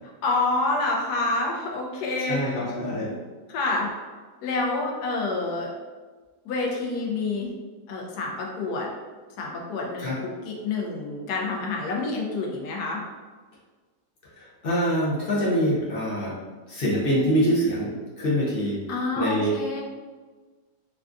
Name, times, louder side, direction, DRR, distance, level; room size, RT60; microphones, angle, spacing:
voice 1, 0.2-2.6 3.5-3.9 4.4-5.7 6.4-7.5 7.9-8.9 9.4-13.0 18.9-19.8, left 3 dB, 75° left, -1 dB, 1.2 m, -28 dB
voice 2, 2.3-3.1 10.0-10.2 14.4-16.3 16.7-17.9 18.2-18.8 19.2-19.6, equal, 60° left, -6 dB, 0.6 m, -24 dB
3.5 x 2.3 x 2.4 m, 1.4 s
omnidirectional pair, 1.8 m